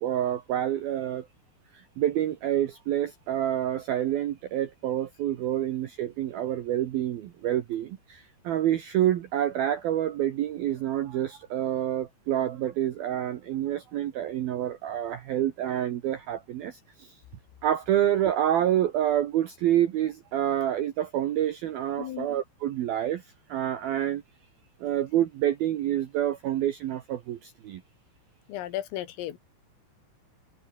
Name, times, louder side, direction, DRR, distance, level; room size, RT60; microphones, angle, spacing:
voice 1, 0.0-1.3 1.7-17.2 17.6-23.2 23.5-24.2 24.8-27.8, right 11 dB, 70° right, 2.4 m, -28 dB
voice 2, 28.5-29.4, left 13 dB, 80° left, 4.7 m, -34 dB
omnidirectional pair, 5.8 m